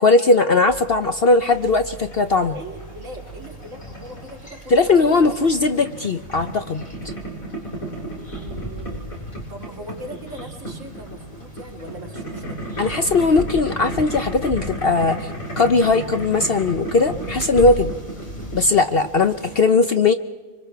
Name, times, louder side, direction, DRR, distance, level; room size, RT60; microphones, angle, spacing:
voice 1, 0.0-2.6 4.7-6.8 12.8-15.3 15.6-17.9 18.5-20.1, left 3 dB, 50° left, 8 dB, 0.9 m, -18 dB
sound 1, 0.7-19.6, equal, 30° left, 2.9 m, -38 dB
Boiling, 1.5-19.6, right 1 dB, 70° left, 6.2 m, -35 dB
voice 2, 2.5-5.2 8.1-9.0 9.5-12.9, right 1 dB, 60° right, 0 dB, 3.2 m, -40 dB
25.5 x 25.0 x 4.6 m, 1.3 s
omnidirectional pair, 1.5 m